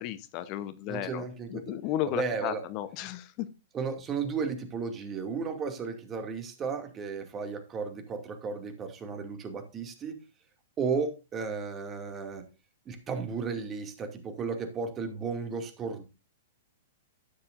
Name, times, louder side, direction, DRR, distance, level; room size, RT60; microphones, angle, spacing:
voice 1, 0.0-1.2 1.5-3.5, left 12 dB, 40° left, 13 dB, 0.9 m, -34 dB
voice 2, 0.9-1.7 2.2-2.6 3.7-10.2 10.8-12.4 12.9-16.0, right 5 dB, 25° right, 6 dB, 2.4 m, -34 dB
12.0 x 9.6 x 2.6 m, 0.27 s
figure-of-eight pair, 110°, 0 cm